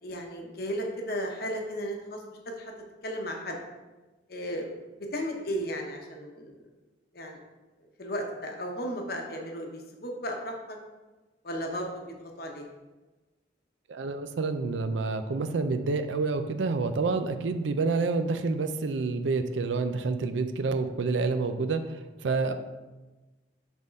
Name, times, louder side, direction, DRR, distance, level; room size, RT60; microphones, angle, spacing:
voice 1, 0.0-2.7 3.0-3.6 4.3-4.8 5.1-6.7 7.1-7.4 8.0-10.5 11.4-12.6, equal, 55° left, 2 dB, 0.9 m, -35 dB
voice 2, 13.9-22.5, right 4 dB, 85° right, 8 dB, 0.4 m, -28 dB
6.2 x 3.6 x 5.2 m, 1.2 s
head